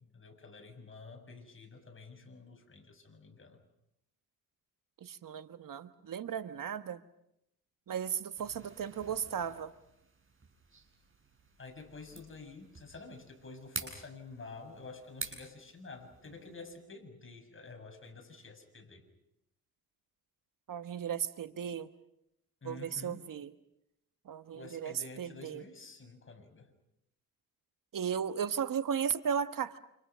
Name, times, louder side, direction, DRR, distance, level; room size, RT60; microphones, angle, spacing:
voice 1, 0.1-3.6 11.6-19.0 22.6-23.2 24.5-26.7, left 3 dB, 35° left, 3 dB, 7.2 m, -49 dB
voice 2, 5.0-7.0 7.9-9.7 20.7-21.9 22.6-23.5 24.2-25.6 27.9-29.8, right 8 dB, 65° right, 10 dB, 1.3 m, -35 dB
sound 1, 8.4-16.8, right 4 dB, 35° right, 7.8 m, -48 dB
29.5 x 28.5 x 6.3 m, 0.81 s
cardioid pair, 90°, 35 cm